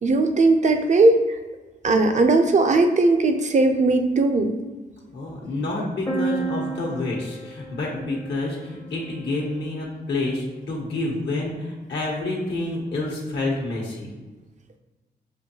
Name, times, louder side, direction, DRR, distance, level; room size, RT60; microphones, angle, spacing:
voice 1, 0.0-1.2 1.8-4.5, right 2 dB, 40° right, 6 dB, 0.5 m, -18 dB
voice 2, 5.1-14.1, left 2 dB, 70° left, -2 dB, 1.0 m, -28 dB
sound 1, 6.1-9.8, right 3 dB, 20° left, 0.6 m, -32 dB
6.3 x 2.6 x 2.8 m, 1.2 s
cardioid pair, 90°, 18 cm